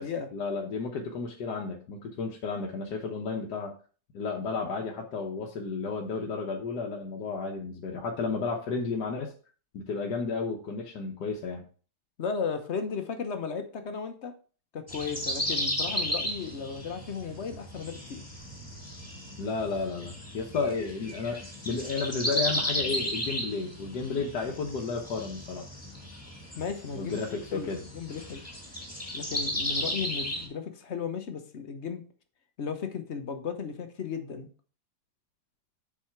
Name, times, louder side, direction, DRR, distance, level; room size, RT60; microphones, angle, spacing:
voice 1, 0.0-3.7 4.1-9.3 9.7-11.6 19.4-25.7 26.9-27.8, left 4 dB, 85° left, 1 dB, 1.6 m, -32 dB
voice 2, 12.2-14.3 14.7-18.2 26.6-28.4 29.1-32.0 32.6-34.5, left 6 dB, 50° left, 7 dB, 1.1 m, -35 dB
sound 1, 14.9-30.5, left 1 dB, 10° left, 2.3 m, -35 dB
7.3 x 4.8 x 4.5 m, 0.39 s
omnidirectional pair, 1.7 m